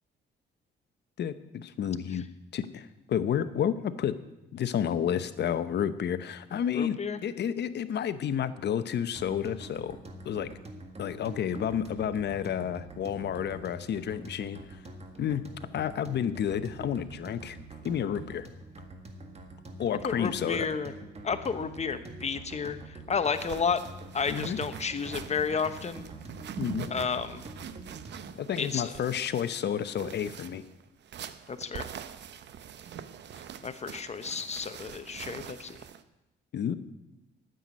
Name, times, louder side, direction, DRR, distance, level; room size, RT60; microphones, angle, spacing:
voice 1, 1.2-2.2 2.5-4.2 4.5-10.0 10.2-10.5 11.0-14.6 15.2-15.4 15.7-17.6 17.8-18.5 19.8-20.7 24.3-24.6 26.6-26.9 28.3-30.6 36.5-36.8, left 9 dB, 60° left, 13 dB, 0.8 m, -30 dB
voice 2, 6.7-7.2 20.0-20.9 21.2-23.8 24.1-26.0 26.9-27.4 28.6-28.9 31.5-31.9 33.6-35.8, left 5 dB, 35° left, 10 dB, 1.0 m, -31 dB
sound 1, 9.2-28.4, right 2 dB, 30° right, 1.8 m, -46 dB
sound 2, 23.3-36.0, right 8 dB, 65° right, 0.8 m, -44 dB
9.5 x 7.8 x 9.5 m, 0.96 s
cardioid pair, 90°, 20 cm